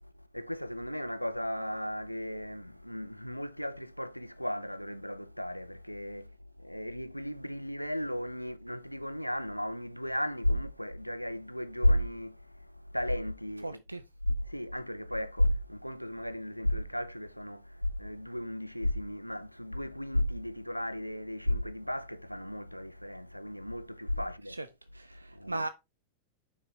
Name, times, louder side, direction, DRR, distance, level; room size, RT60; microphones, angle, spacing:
voice 1, 0.0-13.8 14.2-24.6 25.3-25.7, left 1 dB, 90° left, 0.5 m, -34 dB
voice 2, 13.6-14.0 24.5-24.7 24.9-25.7, right 2 dB, 85° right, 0.4 m, -37 dB
6.5 x 5.8 x 3.3 m
figure-of-eight pair, 90°, 0 cm